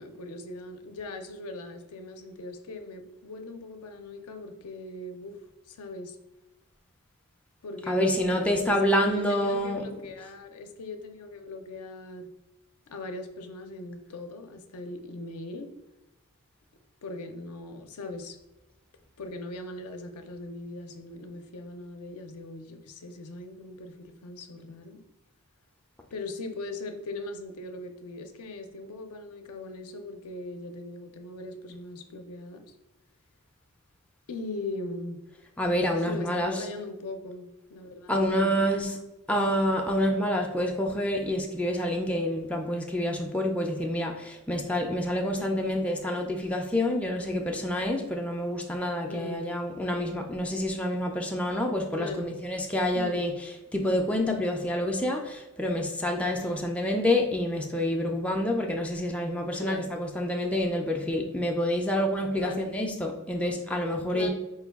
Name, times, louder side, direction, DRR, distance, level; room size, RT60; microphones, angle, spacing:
voice 1, 0.0-5.4 5.7-6.2 7.6-12.3 12.9-15.7 17.0-18.4 19.2-25.0 26.1-32.7 34.3-35.2 36.0-38.9 45.4-45.6 49.1-49.4 51.9-52.3 53.0-53.2 56.4-56.7 59.5-59.9 62.3-62.7 64.1-64.3, left 2 dB, 70° left, 6 dB, 0.5 m, -39 dB
voice 2, 7.9-9.8 35.6-36.6 38.1-39.0 39.3-53.3 53.7-64.3, left 1 dB, 5° left, 1 dB, 0.3 m, -27 dB
4.5 x 2.2 x 3.4 m, 1.0 s
head